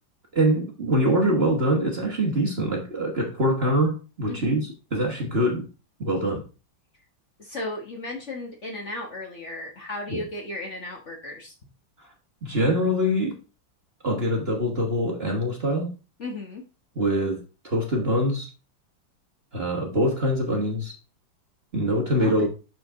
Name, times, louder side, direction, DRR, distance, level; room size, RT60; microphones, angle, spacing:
voice 1, 0.3-5.7 6.0-6.4 10.1-10.2 12.4-13.4 14.0-15.9 16.9-18.5 19.5-20.9 21.7-22.5, equal, 35° right, 1 dB, 1.4 m, -24 dB
voice 2, 4.3-4.7 7.4-11.5 16.2-16.6 22.2-22.5, left 2 dB, 40° left, 1 dB, 1.5 m, -35 dB
6.8 x 6.2 x 3.6 m, 0.32 s
omnidirectional pair, 2.1 m